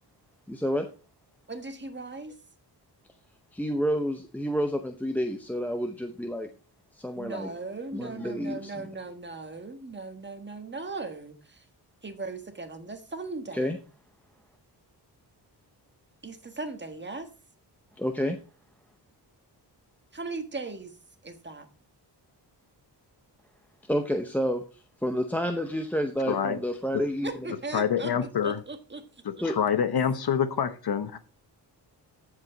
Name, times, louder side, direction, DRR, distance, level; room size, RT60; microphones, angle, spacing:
voice 1, 0.5-0.9 3.5-6.5 6.9-7.5 7.9-8.9 13.5-13.8 18.0-18.4 23.9-27.3 29.4-29.6, equal, 5° left, 7 dB, 0.7 m, -29 dB
voice 2, 1.5-2.3 7.1-11.6 12.0-13.8 16.2-17.3 20.1-21.0 21.2-21.7 27.2-28.1 28.4-29.0 29.4-29.5, right 3 dB, 25° right, 7 dB, 1.5 m, -38 dB
voice 3, 26.3-26.6 27.7-28.6 29.4-31.2, left 8 dB, 65° left, 10 dB, 1.1 m, -26 dB
14.5 x 4.9 x 4.0 m, 0.36 s
cardioid pair, 90°, 41 cm